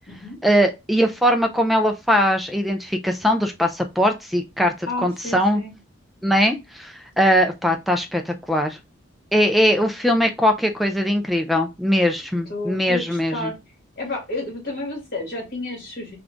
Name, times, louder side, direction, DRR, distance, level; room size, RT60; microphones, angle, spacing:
voice 1, 0.4-4.7 5.0-5.6 6.2-8.8 9.3-13.5, equal, ahead, 0.3 m, -20 dB
voice 2, 4.9-5.7 12.5-13.6 14.0-16.2, left 2 dB, 50° left, 1.8 m, -31 dB
3.5 x 2.4 x 3.8 m
head